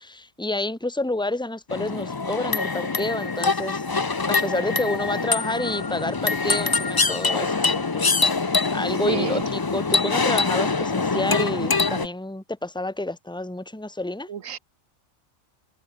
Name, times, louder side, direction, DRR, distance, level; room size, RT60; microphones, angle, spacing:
voice 1, 0.0-3.8 4.3-8.1 8.5-14.3, left 2 dB, 5° left, 2.2 m, -29 dB
sound 1, 1.7-12.1, left 4 dB, 25° left, 0.5 m, -24 dB
voice 2, 9.0-9.5 14.3-14.6, right 8 dB, 80° right, 1.5 m, -30 dB
omnidirectional pair, 1.4 m